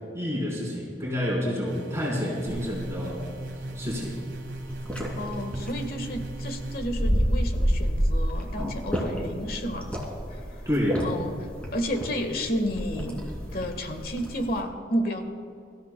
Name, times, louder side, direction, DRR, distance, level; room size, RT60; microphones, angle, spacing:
voice 1, 0.1-3.2 3.7-4.1 10.7-11.0, left 1 dB, 15° right, -6 dB, 3.7 m, -29 dB
sound 1, 1.7-6.8, right 1 dB, 85° right, 1.4 m, -38 dB
sound 2, 2.5-14.6, equal, 10° left, 2.6 m, -30 dB
voice 2, 5.2-9.9 10.3-10.7 11.0-13.2 13.5-15.2, equal, 55° left, 6 dB, 1.4 m, -31 dB
24.5 x 14.0 x 2.2 m, 2.5 s
head